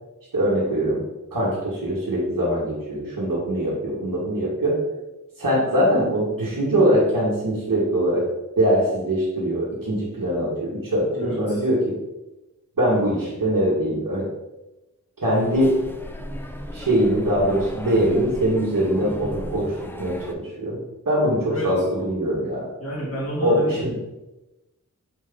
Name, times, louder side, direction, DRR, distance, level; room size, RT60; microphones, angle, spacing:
voice 1, 0.3-1.0 1.3-4.8 5.4-8.2 8.6-12.0 12.8-14.3 15.2-15.8 16.7-20.8 21.1-22.7 23.4-24.0, right 1 dB, 80° right, -8 dB, 2.4 m, -22 dB
voice 2, 11.1-11.6 21.5-21.8 22.8-23.8, equal, 45° left, -6 dB, 2.7 m, -30 dB
sound 1, 15.4-20.3, left 1 dB, 5° left, 0.8 m, -36 dB
7.4 x 5.5 x 4.0 m, 1.0 s
wide cardioid pair, 60°, 32 cm